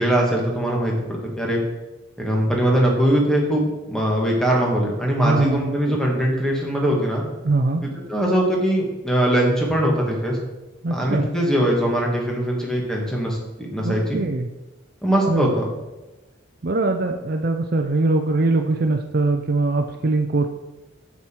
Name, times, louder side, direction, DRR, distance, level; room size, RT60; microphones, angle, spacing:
voice 1, 0.0-1.6 2.2-7.2 7.8-10.4 10.9-13.4 13.7-14.2 15.0-15.6, right 1 dB, 5° left, -2 dB, 1.6 m, -21 dB
voice 2, 5.2-6.0 7.4-7.8 10.8-11.3 13.8-14.5 15.2-15.6 16.6-20.5, right 2 dB, 50° right, 5 dB, 0.5 m, -22 dB
7.9 x 7.3 x 4.5 m, 1.1 s
head